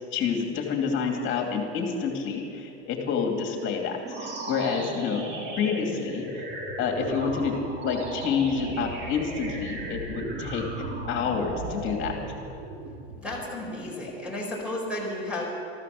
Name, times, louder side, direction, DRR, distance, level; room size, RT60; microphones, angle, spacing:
voice 1, 0.1-5.2 5.6-6.4 6.8-7.5 7.8-10.7 11.1-12.1, left 6 dB, 35° left, 2 dB, 2.6 m, -28 dB
sound 1, 4.0-13.5, right 2 dB, 30° right, 2.2 m, -36 dB
voice 2, 13.2-15.4, left 1 dB, 5° right, -3 dB, 4.2 m, -33 dB
14.0 x 13.5 x 6.6 m, 2.6 s
supercardioid pair, 135°, 33 cm